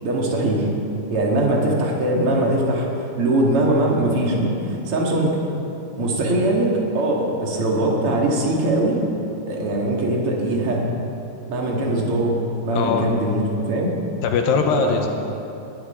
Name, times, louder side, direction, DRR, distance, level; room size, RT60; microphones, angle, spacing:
voice 1, 0.0-0.7 1.1-5.4 6.0-9.0 9.5-10.8 11.5-12.4 12.6-13.4 13.7-13.9 14.8-15.0, right 1 dB, 45° right, -2 dB, 2.5 m, -21 dB
voice 2, 12.7-13.1 14.2-15.1, left 5 dB, 75° left, 4 dB, 2.5 m, -21 dB
20.0 x 11.0 x 4.4 m, 2.9 s
omnidirectional pair, 4.5 m